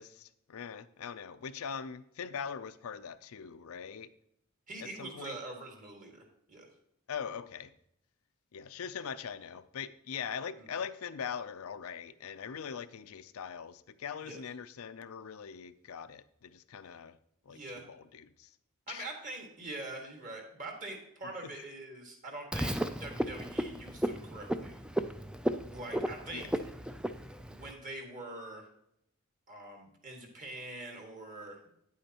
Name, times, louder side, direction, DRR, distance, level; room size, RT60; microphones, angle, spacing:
voice 1, 0.0-4.1 4.8-5.4 7.1-7.7 8.5-17.2 17.5-18.6 18.9-19.1 21.2-21.6 26.3-26.5, left 7 dB, 80° left, 12 dB, 0.5 m, -42 dB
voice 2, 4.7-6.7 10.6-10.7 14.2-14.4 17.5-17.9 18.9-24.8 25.7-26.5 27.5-28.7 29.5-31.6, right 2 dB, 40° right, 2 dB, 1.8 m, -44 dB
Frog, 22.5-27.7, right 1 dB, 5° right, 0.3 m, -35 dB
9.7 x 8.4 x 2.9 m, 0.76 s
head